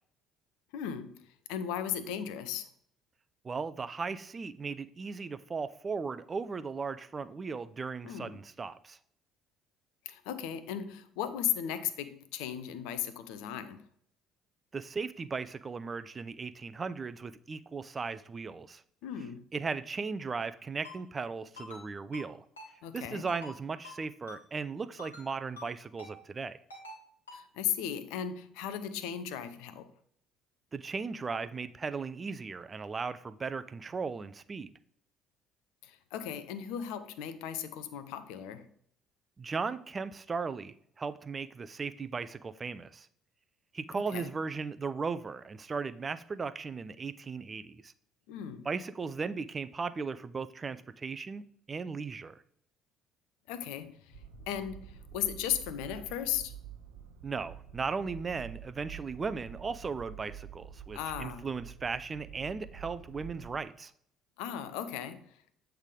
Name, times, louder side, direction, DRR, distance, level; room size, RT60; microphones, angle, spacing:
voice 1, 0.7-2.7 8.0-8.4 10.1-13.8 19.0-19.5 22.8-23.3 27.3-29.9 35.8-38.7 44.0-44.3 48.3-48.7 53.5-56.5 60.9-61.5 64.4-65.4, left 10 dB, 70° left, 0.5 m, -36 dB
voice 2, 3.4-9.0 14.7-18.8 19.5-22.5 22.9-26.6 30.7-34.7 39.4-43.1 43.7-47.9 48.7-51.4 51.7-52.4 57.2-63.9, right 4 dB, 30° right, 0.4 m, -37 dB
Ringtone, 20.8-21.0 21.6-21.8 22.1-22.3 22.6-22.7 23.3-23.5 23.8-24.0 24.3-24.4 25.0-25.3 25.6-25.7 26.0-26.1 26.7-27.0 27.3-27.4, left 2 dB, 90° left, 1.3 m, -46 dB
sound 1, 54.1-63.5, right 9 dB, 75° right, 0.6 m, -48 dB
8.1 x 3.4 x 3.7 m
hypercardioid pair, 55°, 0 cm